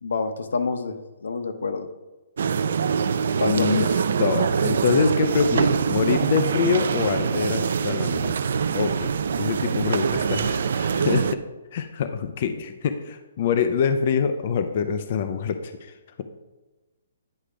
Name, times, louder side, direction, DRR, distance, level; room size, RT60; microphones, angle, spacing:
voice 1, 0.0-1.9 3.4-3.9, left 4 dB, 85° left, 9 dB, 0.8 m, -28 dB
sound 1, 2.4-11.3, right 6 dB, 55° right, 0.3 m, -24 dB
voice 2, 3.4-3.8 4.2-8.3 8.7-11.4 11.7-15.9, left 6 dB, 35° left, 8 dB, 0.4 m, -25 dB
9.9 x 3.3 x 4.9 m, 1.2 s
hypercardioid pair, 175°, 0 cm